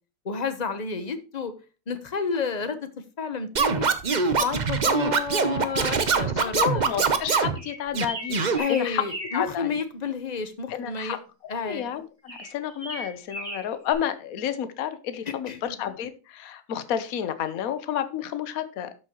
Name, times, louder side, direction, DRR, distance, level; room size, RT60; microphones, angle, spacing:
voice 1, 0.2-1.5 1.9-2.8 3.2-6.6 8.6-11.2 11.5-11.9 15.3-15.7, left 5 dB, 30° left, 10 dB, 0.8 m, -30 dB
Scratching (performance technique), 3.6-7.6 7.9-8.6, right 5 dB, 70° right, 0.4 m, -23 dB
voice 2, 6.4-9.0 9.3-9.7 10.7-18.9, left 9 dB, 55° left, 11 dB, 1.2 m, -30 dB
sound 1, 7.5-9.5 12.3-13.9, equal, 15° right, 3.1 m, -37 dB
12.5 x 6.2 x 3.0 m, 0.33 s
omnidirectional pair, 2.1 m